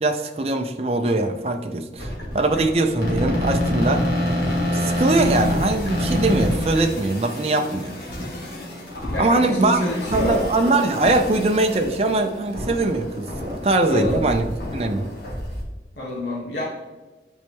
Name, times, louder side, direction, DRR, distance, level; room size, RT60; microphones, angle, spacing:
voice 1, 0.0-4.1 4.7-8.0 9.2-9.8 10.1-15.1, right 2 dB, 35° right, 5 dB, 0.5 m, -21 dB
sound 1, 2.0-15.6, left 1 dB, 60° left, 1.9 m, -27 dB
voice 2, 9.1-10.4 13.9-14.3 15.9-16.6, left 1 dB, 75° left, -5 dB, 1.7 m, -27 dB
9.2 x 4.4 x 3.6 m, 1.2 s
head